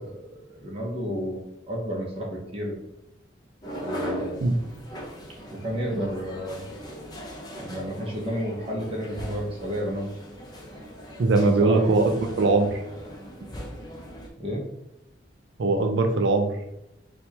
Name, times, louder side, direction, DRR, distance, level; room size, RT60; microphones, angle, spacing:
voice 1, 0.6-1.4 1.7-2.8 3.7-4.4 5.5-6.7 7.6-10.1 11.3-11.9 14.4-14.6, equal, 30° right, -3 dB, 0.6 m, -31 dB
sound 1, 3.6-14.3, equal, 20° left, 0.6 m, -39 dB
voice 2, 11.2-12.8 15.6-16.5, right 3 dB, 70° right, 5 dB, 0.4 m, -21 dB
4.2 x 2.2 x 2.8 m, 0.86 s
head